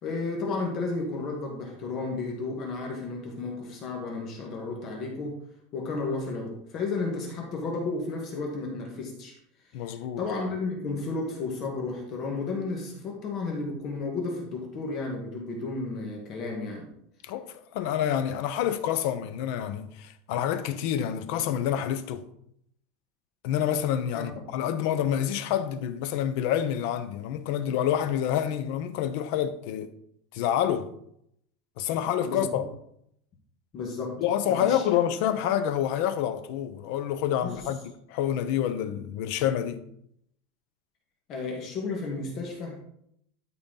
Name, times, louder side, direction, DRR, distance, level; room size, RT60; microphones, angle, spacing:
voice 1, 0.0-5.4 5.7-9.3 9.7-9.9 10.2-16.9 24.1-24.2 32.2-32.6 33.7-34.2 34.5-34.8 37.4-37.7 41.3-42.9, left 3 dB, 30° left, 1.5 m, -33 dB
voice 2, 9.7-10.2 17.2-17.5 17.7-22.3 23.4-29.9 30.3-30.9 31.8-32.6 34.2-39.8, left 10 dB, 50° left, 0.8 m, -28 dB
13.0 x 4.3 x 3.9 m
supercardioid pair, 175°, 0 cm